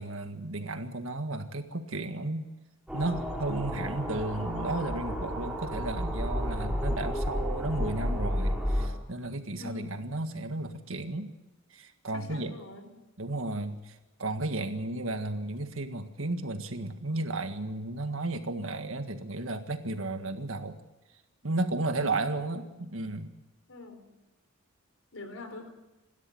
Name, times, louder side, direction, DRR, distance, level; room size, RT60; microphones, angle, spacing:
voice 1, 0.0-2.4 2.9-11.3 11.7-12.5 13.2-20.8 21.4-23.4, right 2 dB, 70° right, 7 dB, 1.8 m, -33 dB
sound 1, 2.9-8.9, equal, 5° right, 3.5 m, -31 dB
voice 2, 9.6-10.0 12.1-12.9 22.3-22.6 23.7-24.1 25.1-25.7, left 3 dB, 80° left, 7 dB, 3.8 m, -44 dB
27.5 x 13.0 x 8.0 m, 1.1 s
head